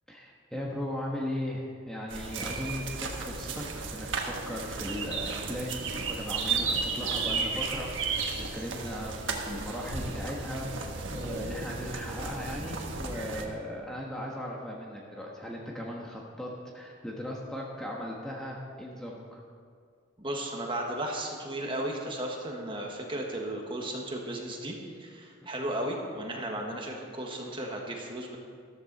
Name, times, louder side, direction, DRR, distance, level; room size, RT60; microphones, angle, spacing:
voice 1, 0.1-19.4 25.5-25.7, left 1 dB, 5° left, -3 dB, 1.3 m, -38 dB
sound 1, 2.1-13.5, right 4 dB, 70° right, 1.4 m, -34 dB
voice 2, 20.2-28.4, right 1 dB, 25° right, 0 dB, 1.7 m, -35 dB
14.0 x 14.0 x 4.2 m, 2.2 s
head